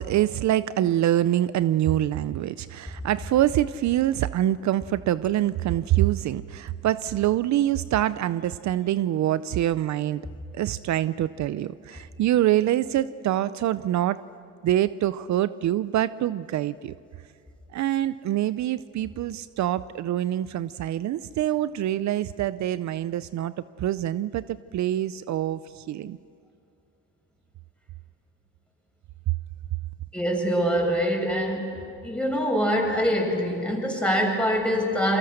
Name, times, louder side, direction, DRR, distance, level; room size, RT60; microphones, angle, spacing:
voice 1, 0.0-10.2 10.5-14.2 14.6-16.9 17.7-23.5 23.8-26.2, right 12 dB, 70° right, 15 dB, 0.6 m, -25 dB
voice 2, 30.1-35.2, equal, 5° left, 0 dB, 6.9 m, -24 dB
28.5 x 23.5 x 6.5 m, 2.6 s
cardioid pair, 90°, 30 cm